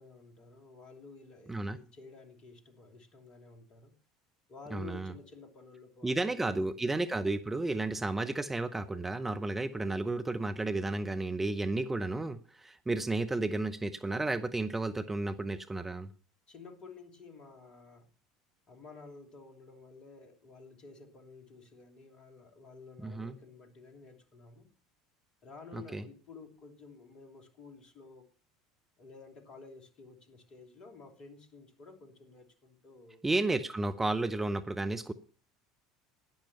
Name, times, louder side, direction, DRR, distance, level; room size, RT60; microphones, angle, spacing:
voice 1, 0.0-4.0 4.5-6.7 16.5-18.1 18.7-24.7 25.4-28.3 29.0-33.2, left 4 dB, 40° left, 2.9 m, -52 dB
voice 2, 4.7-5.1 6.0-16.1 23.0-23.3 25.7-26.0 33.2-35.1, right 2 dB, 15° right, 0.8 m, -32 dB
11.5 x 10.5 x 5.5 m
figure-of-eight pair, 65°, 2 cm